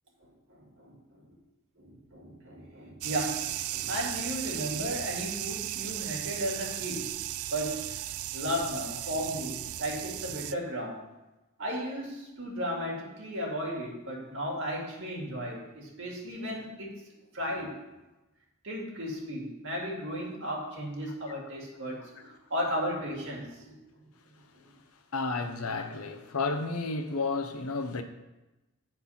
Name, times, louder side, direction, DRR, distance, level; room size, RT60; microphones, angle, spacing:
voice 1, 0.5-1.2 1.8-7.2 7.5-8.0 8.3-11.0 11.6-17.0 17.3-17.8 18.6-23.7, equal, 60° right, 2.2 m, -35 dB
sound 1, 3.0-10.5, right 13 dB, 85° right, 0.4 m, -36 dB
voice 2, 25.1-28.0, left 3 dB, 85° left, 0.8 m, -31 dB
9.8 x 4.5 x 5.6 m
head